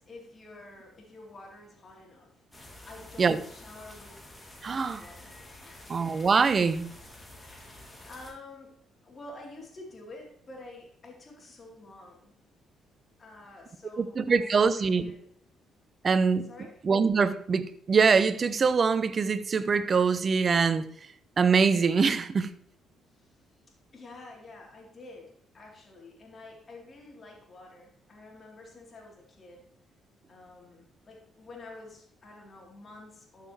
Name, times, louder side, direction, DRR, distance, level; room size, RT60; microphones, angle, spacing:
voice 1, 0.0-2.3 2.9-4.2 4.6-5.3 5.6-6.0 7.4-8.8 9.0-12.3 13.2-15.2 16.4-16.7 23.1-23.3 23.9-29.7 30.3-33.5, left 2 dB, 40° left, 3.7 m, -49 dB
sound 1, 2.5-8.3, left 1 dB, 15° left, 2.8 m, -49 dB
voice 2, 4.6-5.0 5.9-6.9 14.0-15.1 16.0-16.5 16.8-20.9 21.4-22.5, right 5 dB, 45° right, 0.7 m, -24 dB
12.5 x 6.6 x 3.3 m
hypercardioid pair, 50°, 0 cm